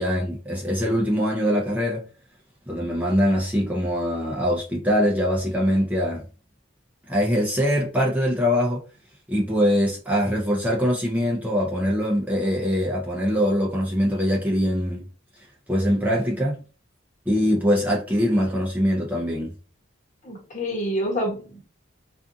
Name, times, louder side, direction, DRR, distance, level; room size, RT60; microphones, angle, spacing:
voice 1, 0.0-2.0 2.7-6.2 7.1-8.8 9.3-15.0 15.7-16.6 17.3-19.5, equal, 10° right, 0.5 m, -23 dB
voice 2, 20.2-21.6, equal, 40° left, 1.0 m, -27 dB
2.5 x 2.4 x 2.6 m
head